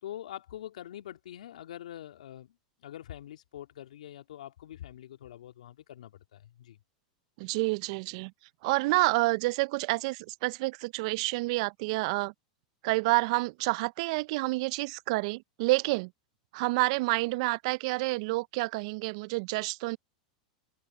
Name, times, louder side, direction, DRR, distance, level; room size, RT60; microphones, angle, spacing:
voice 1, 0.0-6.8, left 12 dB, 75° left, 2.9 m, -45 dB
voice 2, 7.4-8.3 8.6-12.3 12.8-16.1 16.5-20.0, right 23 dB, 60° right, 0.5 m, -28 dB
hypercardioid pair, 105°, 4 cm